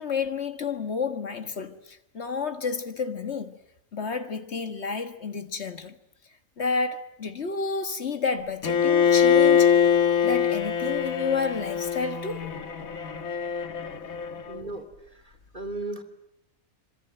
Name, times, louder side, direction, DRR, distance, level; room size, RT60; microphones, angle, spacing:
voice 1, 0.0-3.6 3.9-6.0 6.6-9.8 10.2-12.5, left 5 dB, 50° left, 1.9 m, -30 dB
Bowed string instrument, 8.6-14.6, left 8 dB, 80° left, 1.9 m, -23 dB
voice 2, 14.5-16.0, right 2 dB, 35° right, 2.7 m, -37 dB
26.5 x 25.0 x 9.0 m
omnidirectional pair, 1.5 m